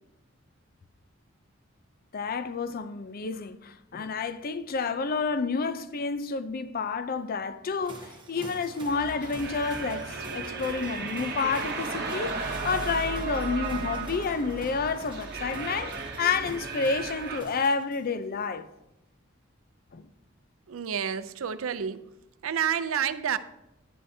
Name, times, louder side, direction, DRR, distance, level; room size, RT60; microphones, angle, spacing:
voice 1, 2.1-18.7 19.9-20.1, left 4 dB, 45° left, 0.5 m, -30 dB
sound 1, 7.8-18.2, right 2 dB, 25° right, 1.2 m, -48 dB
sound 2, 8.9-17.4, right 4 dB, 55° right, 0.9 m, -35 dB
voice 2, 20.7-22.0 22.4-23.4, right 8 dB, 85° right, 0.5 m, -29 dB
11.0 x 10.0 x 2.7 m
head